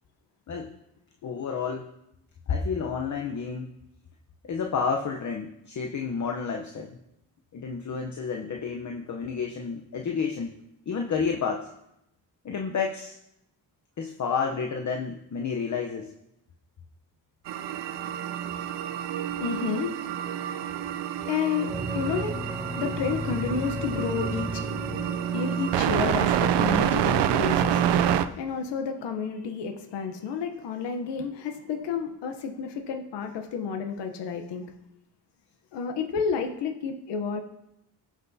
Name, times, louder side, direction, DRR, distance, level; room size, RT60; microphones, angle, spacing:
voice 1, 1.2-1.9 2.5-3.7 4.5-7.0 7.5-10.5 10.9-11.7 12.4-13.2 14.0-16.1, left 5 dB, 45° left, 2 dB, 0.8 m, -30 dB
sound 1, 17.5-28.3, right 10 dB, 85° right, 0.6 m, -27 dB
voice 2, 19.3-34.7 35.7-37.4, left 6 dB, 85° left, 5 dB, 0.9 m, -31 dB
sound 2, 21.7-26.5, right 1 dB, 5° right, 1.2 m, -34 dB
17.0 x 6.0 x 2.7 m, 0.84 s
cardioid pair, 80°, 41 cm